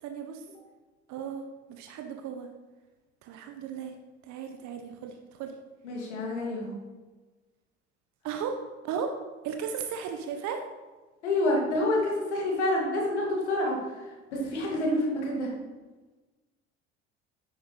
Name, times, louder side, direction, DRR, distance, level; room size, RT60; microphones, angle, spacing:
voice 1, 0.0-0.4 1.1-1.4 1.7-2.5 3.2-3.9 4.2-5.5 8.2-9.1 9.4-10.6, right 7 dB, 55° right, 5 dB, 1.1 m, -35 dB
voice 2, 5.8-6.8 11.2-15.5, left 1 dB, 75° left, -2 dB, 2.5 m, -28 dB
10.5 x 9.3 x 3.3 m, 1.2 s
figure-of-eight pair, 55°, 35 cm